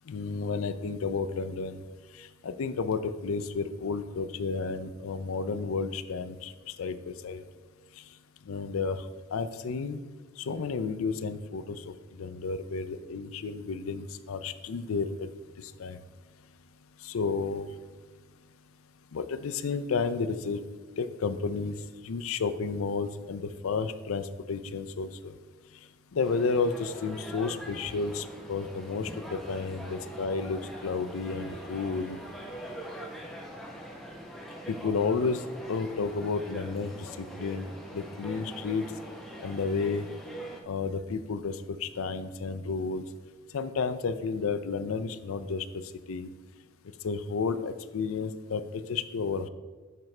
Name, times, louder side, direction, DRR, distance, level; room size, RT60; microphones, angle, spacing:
voice 1, 0.1-1.8 2.2-7.4 8.5-9.0 9.3-10.0 10.4-15.3 15.6-16.0 17.0-17.7 19.1-20.6 21.0-21.7 22.0-25.3 26.1-32.2 34.7-35.4 35.7-37.7 37.9-38.9 39.4-40.1 40.7-43.0 43.5-45.8 46.1-46.3 47.0-48.6 48.9-49.5, left 4 dB, 85° left, 11 dB, 0.4 m, -32 dB
sound 1, 26.2-40.6, equal, ahead, 0.8 m, -43 dB
9.0 x 6.0 x 3.2 m, 1.4 s
head